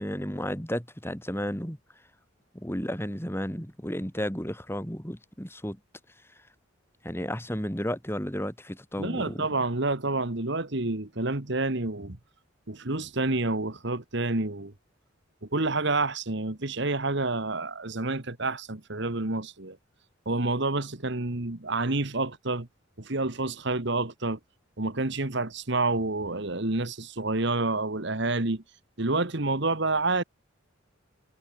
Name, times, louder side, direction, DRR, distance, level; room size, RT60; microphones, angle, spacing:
voice 1, 0.0-1.8 2.5-5.8 7.0-9.5, equal, 10° left, 3.9 m, -33 dB
voice 2, 9.0-12.2 12.7-14.7 15.5-19.8 20.2-22.7 23.0-24.4 24.8-28.6 29.0-30.2, right 2 dB, 55° right, 1.7 m, -28 dB
head